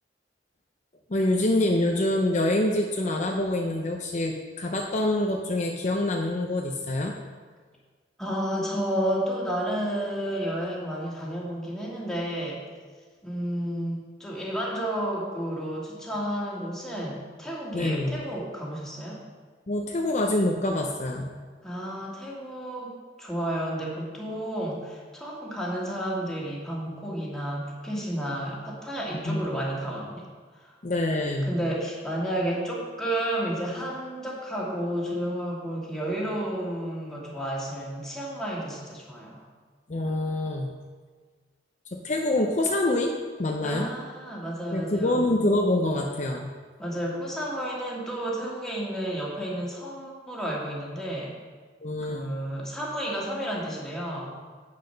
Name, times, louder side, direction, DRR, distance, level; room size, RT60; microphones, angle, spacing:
voice 1, 1.1-7.1 17.7-18.2 19.7-21.3 29.3-29.6 30.8-31.6 39.9-40.7 41.9-43.1 43.4-43.9 44.7-46.5 51.8-52.3, left 1 dB, 40° left, 1 dB, 0.6 m, -26 dB
voice 2, 8.2-12.6 13.2-19.2 21.6-30.2 30.6-30.7 31.5-39.4 43.6-45.2 46.8-51.4 52.0-54.4, right 1 dB, 5° left, -5 dB, 2.0 m, -31 dB
8.6 x 6.5 x 5.7 m, 1.5 s
head